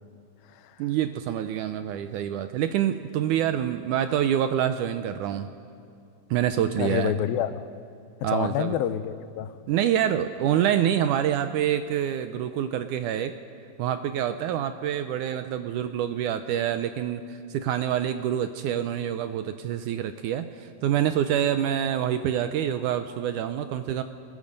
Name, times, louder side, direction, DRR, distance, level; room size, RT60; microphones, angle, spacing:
voice 1, 0.8-5.5 6.3-7.1 8.2-8.7 9.7-13.3 13.8-24.0, right 10 dB, 80° right, 9 dB, 1.9 m, -26 dB
voice 2, 6.8-7.6 8.2-9.6, left 10 dB, 90° left, 12 dB, 2.5 m, -28 dB
28.0 x 20.5 x 5.3 m, 2.4 s
omnidirectional pair, 4.1 m